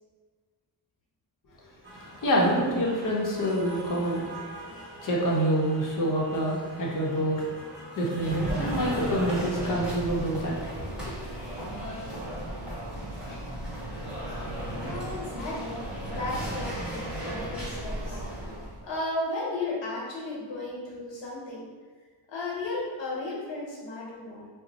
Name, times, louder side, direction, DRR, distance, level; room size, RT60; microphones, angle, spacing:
sound 1, 1.8-9.4, right 1 dB, 25° right, 1.1 m, -44 dB
voice 1, 2.0-4.2 5.0-7.5 8.0-11.1, equal, 45° left, -3 dB, 0.7 m, -27 dB
sound 2, 8.2-18.8, right 1 dB, ahead, 1.0 m, -35 dB
voice 2, 14.9-18.2 18.8-21.7 22.3-24.5, left 2 dB, 85° left, -4 dB, 1.0 m, -35 dB
2.6 x 2.0 x 3.9 m, 1.4 s
wide cardioid pair, 155°, 43 cm